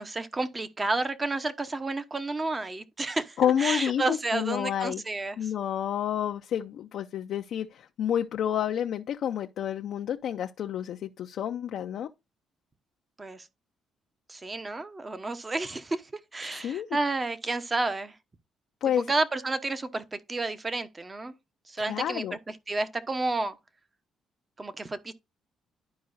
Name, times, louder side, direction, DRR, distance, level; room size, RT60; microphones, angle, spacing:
voice 1, 0.0-5.5 13.2-13.5 14.3-18.2 19.1-21.3 21.7-23.6 24.6-25.1, right 3 dB, 25° right, 0.9 m, -31 dB
voice 2, 3.4-5.0 5.4-12.1 16.6-16.9 18.8-19.1 21.9-22.4, left 10 dB, 70° left, 0.5 m, -29 dB
11.5 x 4.7 x 2.6 m
cardioid pair, 90°, 0 cm